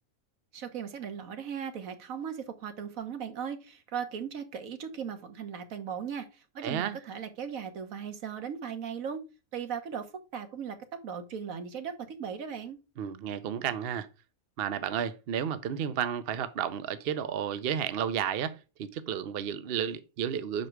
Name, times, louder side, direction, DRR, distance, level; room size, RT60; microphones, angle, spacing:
voice 1, 0.5-9.2 9.5-12.8, right 7 dB, 75° right, 1.4 m, -38 dB
voice 2, 6.6-7.0 13.0-14.1 14.6-20.7, right 8 dB, 55° right, 0.7 m, -32 dB
6.0 x 5.0 x 4.5 m
omnidirectional pair, 1.5 m